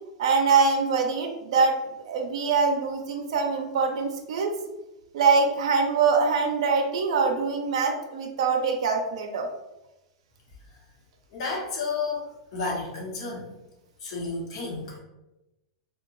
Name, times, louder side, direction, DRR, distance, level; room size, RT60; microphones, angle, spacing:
voice 1, 0.2-1.8 2.0-4.6 5.1-9.5, right 5 dB, 75° right, 3 dB, 0.4 m, -23 dB
voice 2, 11.3-12.3 12.5-13.4 14.0-15.0, left 4 dB, 65° left, -3 dB, 0.9 m, -31 dB
2.5 x 2.2 x 3.0 m, 0.98 s
hypercardioid pair, 130°, 3 cm